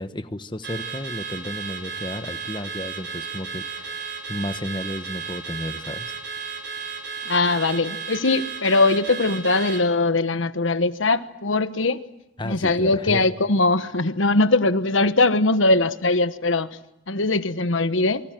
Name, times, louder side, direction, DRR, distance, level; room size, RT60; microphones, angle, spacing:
voice 1, 0.0-6.2 12.4-13.3, left 1 dB, 25° left, 1.2 m, -33 dB
Car / Alarm, 0.6-9.9, right 5 dB, 55° right, 3.9 m, -34 dB
voice 2, 7.3-12.0 12.4-16.7 17.1-18.2, left 2 dB, 75° left, 1.3 m, -21 dB
28.0 x 24.5 x 7.6 m
head